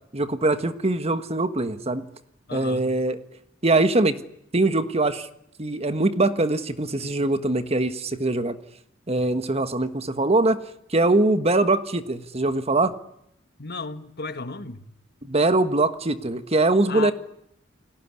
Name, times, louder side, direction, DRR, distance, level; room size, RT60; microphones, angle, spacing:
voice 1, 0.1-2.0 2.5-3.2 3.6-4.2 4.5-5.3 5.6-8.5 9.1-10.6 10.9-12.9 15.2-17.1, right 2 dB, 30° right, 1.5 m, -22 dB
voice 2, 2.5-2.9 13.6-14.9 16.9-17.1, left 3 dB, 55° left, 1.8 m, -34 dB
29.5 x 18.0 x 9.8 m
head